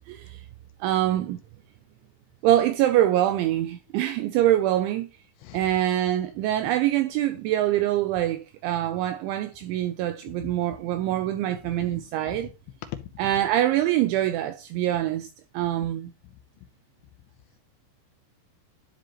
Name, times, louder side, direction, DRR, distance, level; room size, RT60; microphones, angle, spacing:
voice 1, 0.1-0.4 0.8-1.4 2.4-5.1 5.5-12.5 13.2-15.3 15.5-16.1, right 13 dB, 85° right, 2.7 m, -24 dB
voice 2, 5.4-5.7 10.3-10.5 11.8-12.5 12.8-13.3 15.8-15.9 16.2-16.7, left 13 dB, 80° left, 2.6 m, -42 dB
12.0 x 4.9 x 3.0 m
omnidirectional pair, 5.9 m